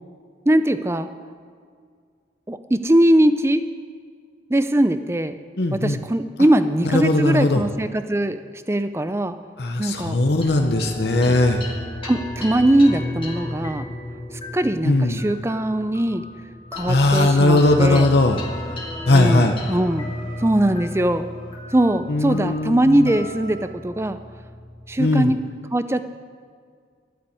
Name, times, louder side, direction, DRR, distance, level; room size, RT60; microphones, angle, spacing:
voice 1, 0.5-1.1 2.5-3.6 4.5-5.4 5.7-8.4 8.7-9.4 9.8-10.2 11.3-11.4 12.0-13.9 14.5-16.2 16.7-18.1 19.1-20.1 20.4-21.3 21.7-24.2 24.9-25.4 25.7-26.0, right 1 dB, 15° right, 11 dB, 0.5 m, -20 dB
voice 2, 5.6-6.0 6.9-7.6 9.6-11.6 14.8-15.2 16.9-18.4 19.1-19.5 22.1-23.1 25.0-25.3, left 2 dB, 60° left, 4 dB, 0.8 m, -18 dB
sound 1, 10.4-25.1, left 1 dB, 30° left, 1.6 m, -34 dB
12.0 x 7.2 x 9.5 m, 2.1 s
head